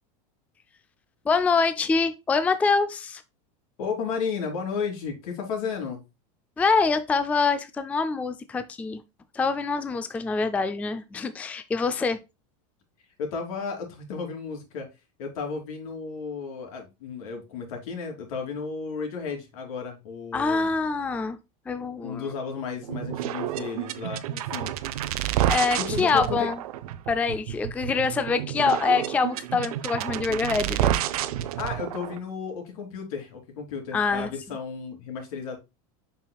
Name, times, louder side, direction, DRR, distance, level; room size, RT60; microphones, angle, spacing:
voice 1, 1.3-3.2 6.6-9.0 9.3-12.2 20.3-21.4 21.7-22.3 25.5-26.6 27.1-31.0 33.9-34.3, left 4 dB, 10° left, 0.4 m, -25 dB
voice 2, 3.8-6.0 13.2-14.9 15.2-20.7 22.0-24.7 25.8-26.5 31.6-35.6, left 5 dB, 75° left, 3.2 m, -33 dB
sound 1, 22.8-32.2, right 12 dB, 90° right, 0.8 m, -29 dB
7.2 x 5.9 x 2.3 m
supercardioid pair, 150°, 19 cm